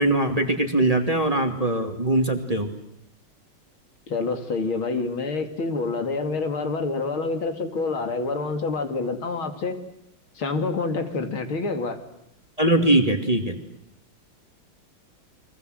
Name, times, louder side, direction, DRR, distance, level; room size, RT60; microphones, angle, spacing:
voice 1, 0.0-2.7 12.6-13.6, right 1 dB, 20° right, 5 dB, 2.2 m, -21 dB
voice 2, 4.1-9.8 10.3-12.0, left 3 dB, 75° left, 6 dB, 3.4 m, -27 dB
29.5 x 24.0 x 7.9 m, 0.77 s
omnidirectional pair, 2.3 m